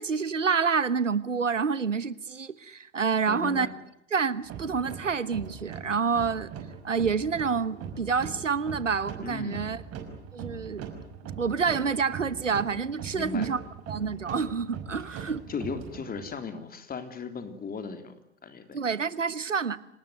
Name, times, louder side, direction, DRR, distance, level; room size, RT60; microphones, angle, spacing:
voice 1, 0.0-3.7 4.1-6.5 6.8-9.8 10.3-10.9 11.4-13.6 13.9-15.5 18.7-19.8, right 5 dB, 90° right, 17 dB, 1.2 m, -28 dB
voice 2, 3.3-3.7 9.2-9.6 13.1-13.5 15.1-18.2 18.4-18.8, left 5 dB, 25° left, 9 dB, 3.5 m, -37 dB
sound 1, 4.4-16.3, right 6 dB, 40° right, 5.8 m, -41 dB
27.0 x 19.5 x 9.3 m, 0.79 s
figure-of-eight pair, 85°, 36 cm